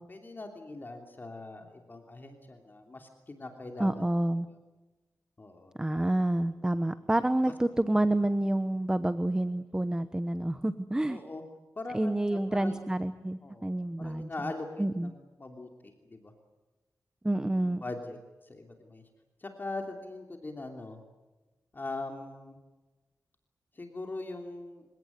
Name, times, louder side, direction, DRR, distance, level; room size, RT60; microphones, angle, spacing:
voice 1, 0.1-4.1 4.5-4.6 5.4-6.1 7.4-7.5 11.1-11.4 11.7-12.7 13.4-13.7 14.0-16.3 17.5-18.2 18.4-19.0 19.4-21.0 21.7-22.6 23.7-24.9, left 2 dB, 35° left, 4 dB, 3.0 m, -41 dB
voice 2, 3.8-4.5 5.8-11.2 11.9-14.3 14.8-15.1 17.2-17.8, right 1 dB, 15° right, 12 dB, 0.9 m, -28 dB
28.5 x 17.0 x 9.4 m, 1.1 s
wide cardioid pair, 110°, 6 cm